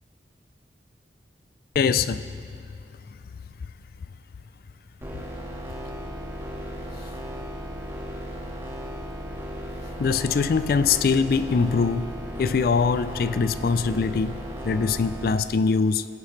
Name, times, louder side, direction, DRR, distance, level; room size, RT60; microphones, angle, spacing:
voice 1, 1.7-2.4 2.7-2.8 3.1-3.2 10.0-12.1 12.4-16.1, left 5 dB, 55° left, 0.3 m, -23 dB
sound 1, 5.0-15.4, equal, 15° right, 1.5 m, -36 dB
20.5 x 8.9 x 3.2 m
head